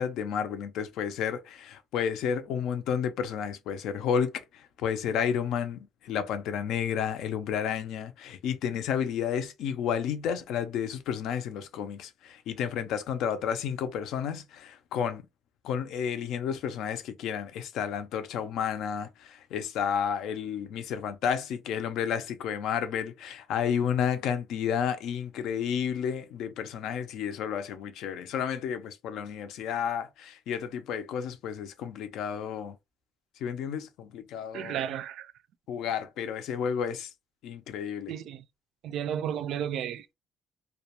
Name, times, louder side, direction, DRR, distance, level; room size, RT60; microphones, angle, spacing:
voice 1, 0.0-15.2 15.6-32.8 33.4-34.8 35.7-37.1 37.4-38.1, left 8 dB, 70° left, 0.4 m, -31 dB
voice 2, 34.5-35.3 38.1-38.4 38.8-40.1, right 9 dB, 60° right, 0.3 m, -33 dB
2.4 x 2.1 x 2.8 m
cardioid pair, 165°, 0 cm